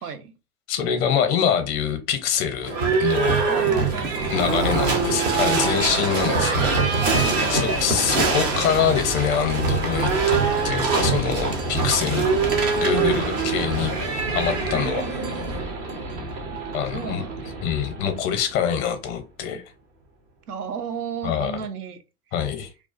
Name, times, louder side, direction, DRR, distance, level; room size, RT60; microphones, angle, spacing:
voice 1, 0.0-0.3 3.5-4.4 4.6-6.3 7.3-8.4 12.2-13.3 14.7-15.8 16.9-17.3 20.5-22.0, right 6 dB, 85° right, 0.6 m, -35 dB
voice 2, 0.7-2.7 3.0-3.4 4.3-6.8 7.2-10.4 10.6-12.3 12.7-13.9 14.3-15.0 16.7-17.2 17.6-19.6 21.2-21.5 22.3-22.7, left 8 dB, 30° left, 0.6 m, -25 dB
Livestock farm animals working animals / Bell, 2.6-18.5, right 4 dB, 20° right, 0.3 m, -24 dB
2.3 x 2.3 x 2.3 m
figure-of-eight pair, 95°, 45 cm